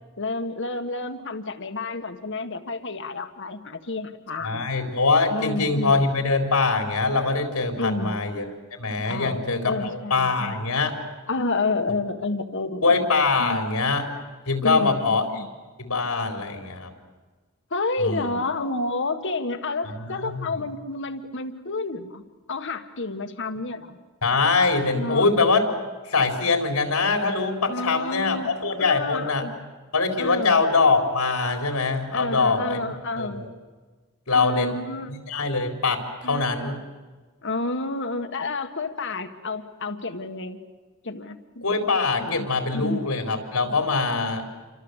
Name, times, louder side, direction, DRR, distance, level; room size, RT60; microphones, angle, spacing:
voice 1, 0.2-4.7 5.3-6.1 7.8-8.2 9.1-10.5 11.3-12.8 13.4-13.6 14.6-15.5 17.7-22.2 22.5-24.0 24.9-25.3 27.7-28.5 28.8-29.5 30.2-30.6 32.1-33.4 34.3-35.1 36.2-36.7 37.4-40.6 41.0-41.6 42.2-43.0, left 3 dB, 60° left, 8 dB, 1.7 m, -30 dB
voice 2, 4.4-8.4 8.8-9.8 10.1-10.9 12.8-14.1 14.5-15.4 15.8-16.9 18.0-18.3 19.8-20.5 24.2-25.6 26.1-29.5 29.9-33.4 34.3-34.8 35.3-36.8 41.6-44.5, left 3 dB, 90° left, 4 dB, 4.2 m, -23 dB
28.5 x 25.0 x 8.2 m, 1.4 s
head